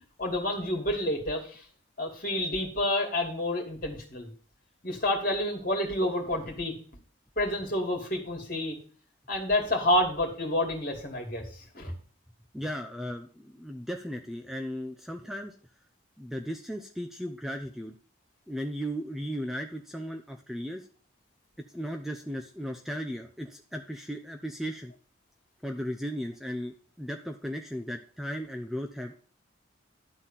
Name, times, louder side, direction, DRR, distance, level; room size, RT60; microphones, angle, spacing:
voice 1, 0.2-1.6 2.0-4.3 4.8-6.7 7.4-8.8 9.3-11.5 11.7-11.9, left 1 dB, 45° left, 2 dB, 2.5 m, -29 dB
voice 2, 12.5-15.5 16.2-17.9 18.5-20.9 21.7-24.9 25.6-29.1, equal, ahead, 4 dB, 0.6 m, -36 dB
11.5 x 4.2 x 7.4 m, 0.43 s
head